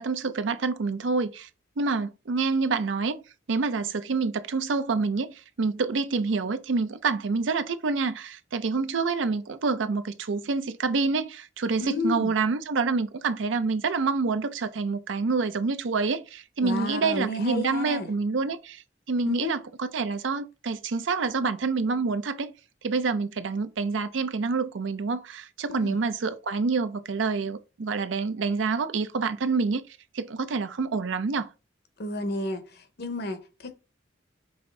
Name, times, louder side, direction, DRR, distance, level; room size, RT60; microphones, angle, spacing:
voice 1, 0.0-1.5 1.8-3.2 3.5-18.8 19.1-22.5 22.8-29.8 30.1-31.5, right 4 dB, 85° right, 0.5 m, -27 dB
voice 2, 11.8-12.3 16.6-18.1 19.2-19.6 25.7-26.0 32.0-33.7, left 2 dB, 60° left, 0.8 m, -32 dB
5.5 x 2.6 x 3.3 m
head